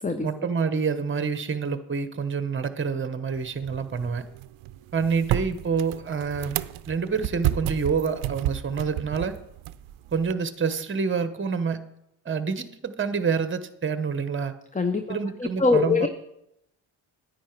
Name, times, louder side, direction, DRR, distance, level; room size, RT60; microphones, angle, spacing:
voice 1, 0.2-4.2 4.9-6.6 6.9-9.3 10.1-11.9 12.2-14.5 15.1-16.1, right 5 dB, 25° right, 11 dB, 1.0 m, -27 dB
sound 1, 3.3-10.3, right 14 dB, 80° right, 0.5 m, -32 dB
voice 2, 14.7-16.1, left 4 dB, 15° left, 8 dB, 0.8 m, -23 dB
10.5 x 9.2 x 4.5 m, 0.81 s
supercardioid pair, 45°, 47 cm